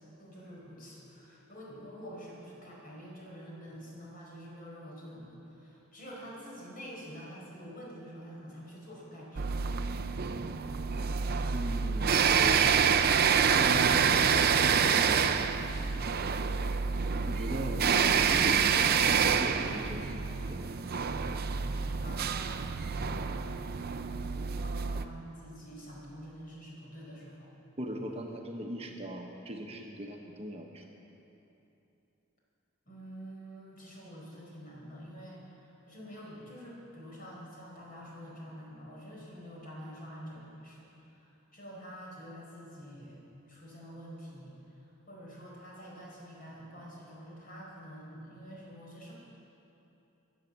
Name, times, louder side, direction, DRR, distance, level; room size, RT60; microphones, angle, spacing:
voice 1, 0.2-9.5 22.0-22.8 24.6-27.5 32.9-49.1, equal, 45° left, -4 dB, 4.7 m, -47 dB
sound 1, 9.4-25.0, right 6 dB, 50° right, 0.6 m, -27 dB
voice 2, 11.5-12.9 13.5-15.6 17.3-17.8 18.3-20.6 27.8-30.9, right 1 dB, 30° right, 1 dB, 1.1 m, -39 dB
22.0 x 8.2 x 7.4 m, 2.9 s
head